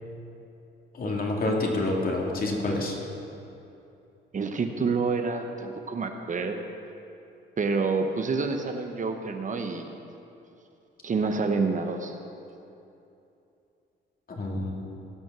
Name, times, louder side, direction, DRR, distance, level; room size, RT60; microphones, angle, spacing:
voice 1, 0.9-3.0 14.3-14.7, left 2 dB, 45° left, -1 dB, 2.3 m, -27 dB
voice 2, 4.3-6.7 7.6-9.9 11.0-12.1, right 4 dB, 40° right, 5 dB, 0.9 m, -28 dB
17.0 x 6.1 x 6.0 m, 2.8 s
cardioid pair, 90°, 20 cm